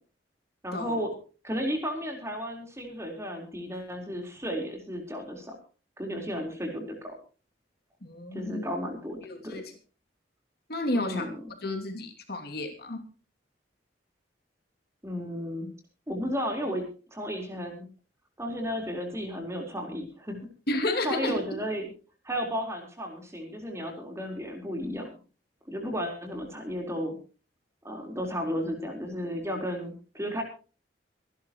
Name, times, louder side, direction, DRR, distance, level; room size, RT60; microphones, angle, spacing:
voice 1, 0.6-1.1 1.4-5.5 6.0-7.2 8.3-9.2 9.4-9.6 10.9-11.4 15.0-15.7 16.1-16.8 17.1-17.9 18.4-20.4 21.0-21.9 22.2-25.1 25.7-27.2 27.8-30.4, equal, 15° right, 2 dB, 4.2 m, -33 dB
voice 2, 8.0-8.7 9.2-9.7 10.7-11.3 11.6-13.1 20.7-21.4, left 2 dB, 60° left, 4 dB, 2.8 m, -31 dB
25.5 x 11.0 x 3.1 m, 0.35 s
head